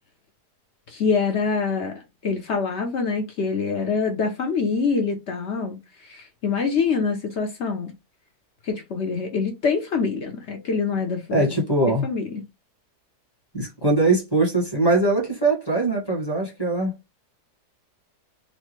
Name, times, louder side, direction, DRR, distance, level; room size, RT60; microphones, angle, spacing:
voice 1, 0.9-7.9 8.6-11.4 12.0-12.2, left 5 dB, 60° left, 0.8 m, -25 dB
voice 2, 11.3-12.1 13.5-16.9, right 2 dB, 15° left, 1.1 m, -21 dB
4.1 x 2.1 x 3.1 m
omnidirectional pair, 1.8 m